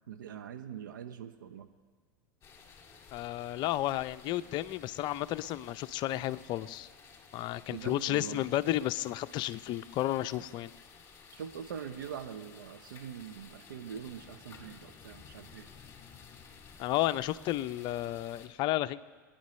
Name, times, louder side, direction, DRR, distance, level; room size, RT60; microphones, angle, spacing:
voice 1, 0.0-1.7 7.7-8.4 11.3-15.7, right 8 dB, 80° right, 8 dB, 0.9 m, -43 dB
sound 1, 2.4-18.5, left 5 dB, 25° left, 2.4 m, -54 dB
voice 2, 3.1-6.9 7.3-10.7 16.8-19.0, left 14 dB, 45° left, 14 dB, 0.6 m, -32 dB
25.0 x 10.0 x 3.2 m, 1.4 s
hypercardioid pair, 95°, 10 cm